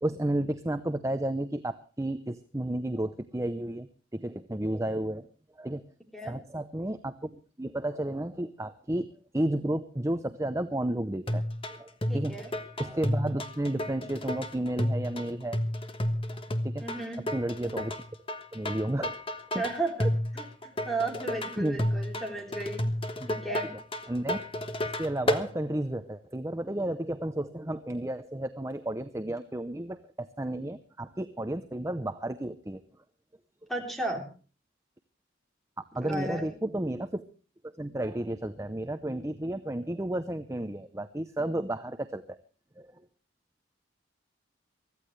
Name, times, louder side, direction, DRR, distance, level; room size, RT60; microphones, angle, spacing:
voice 1, 0.0-5.3 5.6-5.8 6.3-9.1 9.3-11.4 11.7-12.4 12.8-15.6 16.6-16.8 17.3-17.9 18.5-19.2 19.5-19.6 21.5-21.8 24.1-24.4 25.0-32.8 35.9-37.2 37.6-42.4 42.8-43.0, right 1 dB, 15° right, 9 dB, 0.6 m, -32 dB
sound 1, 11.3-25.5, left 1 dB, 30° left, 1.3 m, -31 dB
voice 2, 12.1-12.5 16.8-17.2 19.6-22.8 23.3-23.7 33.7-34.2 36.0-36.4, right 2 dB, ahead, 2 dB, 3.5 m, -34 dB
23.5 x 15.0 x 3.2 m, 0.38 s
head